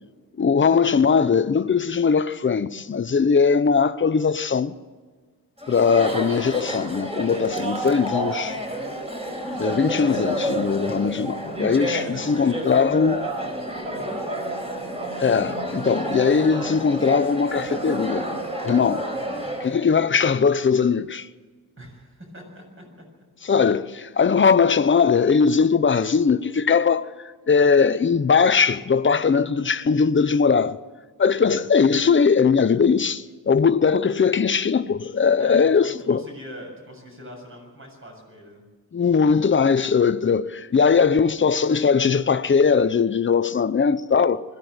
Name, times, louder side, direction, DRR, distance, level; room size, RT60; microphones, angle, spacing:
voice 1, 0.4-4.7 5.7-8.6 9.6-13.2 15.2-18.2 18.6-19.0 19.6-21.3 23.4-27.1 27.5-30.8 31.2-36.2 38.9-44.4, left 5 dB, 30° left, 0.8 m, -20 dB
Chatter, 5.6-19.7, right 1 dB, 15° right, 4.8 m, -29 dB
voice 2, 12.0-12.9 13.2-14.4 19.1-19.4 21.8-23.1 31.3-31.6 35.4-38.6 41.2-41.4, equal, 35° right, 7.1 m, -43 dB
21.0 x 15.5 x 7.9 m
wide cardioid pair, 130°, 36 cm